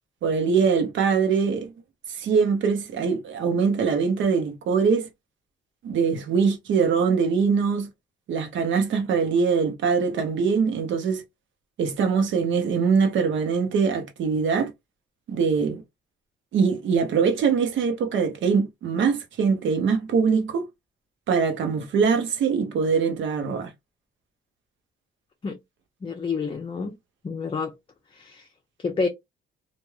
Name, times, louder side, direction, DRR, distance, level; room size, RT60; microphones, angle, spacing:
voice 1, 0.2-1.7 2.1-5.1 5.8-7.9 8.3-11.2 11.8-14.7 15.3-15.8 16.5-20.7 21.3-23.7, right 5 dB, 75° right, 0.9 m, -23 dB
voice 2, 26.0-26.9 27.2-27.7 28.1-28.5 28.8-29.1, left 4 dB, 25° left, 0.7 m, -28 dB
3.2 x 2.4 x 2.2 m
cardioid pair, 90°, 20 cm